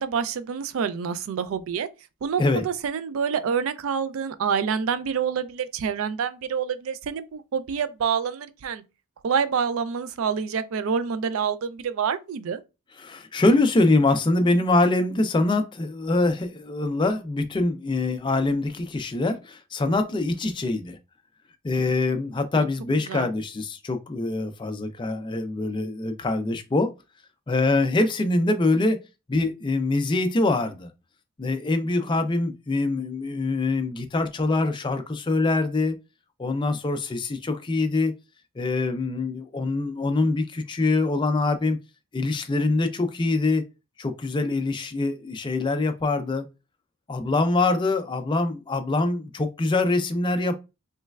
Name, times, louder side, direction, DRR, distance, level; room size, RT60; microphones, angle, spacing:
voice 1, 0.0-1.9 2.2-8.8 9.2-12.6 22.6-22.7 23.1-23.3, right 6 dB, 65° right, 0.3 m, -27 dB
voice 2, 13.0-21.0 21.6-26.9 27.5-29.0 29.3-30.9 31.4-36.0 36.4-38.1 38.6-41.8 42.1-43.6 44.0-46.4 47.1-50.6, left 2 dB, 20° left, 0.4 m, -24 dB
3.2 x 3.1 x 2.3 m
head